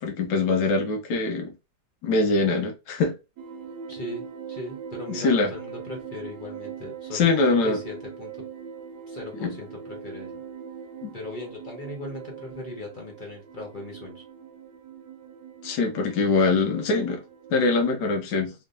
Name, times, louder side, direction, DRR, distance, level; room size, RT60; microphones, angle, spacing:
voice 1, 0.0-1.5 2.0-3.2 5.1-5.5 7.1-7.8 9.4-9.6 11.0-11.1 15.6-17.2 17.5-18.5, left 3 dB, 80° left, 1.5 m, -23 dB
sound 1, 3.4-17.6, right 7 dB, 65° right, 1.1 m, -41 dB
voice 2, 3.9-4.2 4.5-8.3 9.1-10.4 11.1-14.2, left 2 dB, 35° left, 0.9 m, -38 dB
3.7 x 3.1 x 2.6 m
omnidirectional pair, 2.0 m